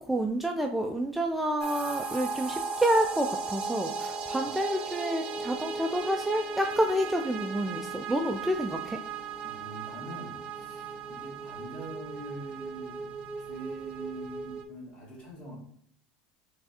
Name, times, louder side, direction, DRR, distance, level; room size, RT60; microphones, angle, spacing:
voice 1, 0.0-9.0, right 1 dB, 5° right, 2 dB, 0.3 m, -29 dB
sound 1, 1.6-14.6, right 4 dB, 35° right, 0.7 m, -37 dB
voice 2, 9.4-13.1 13.4-15.6, right 2 dB, 30° left, -1 dB, 1.6 m, -44 dB
4.5 x 3.3 x 2.8 m, 0.64 s
supercardioid pair, 140°, 3 cm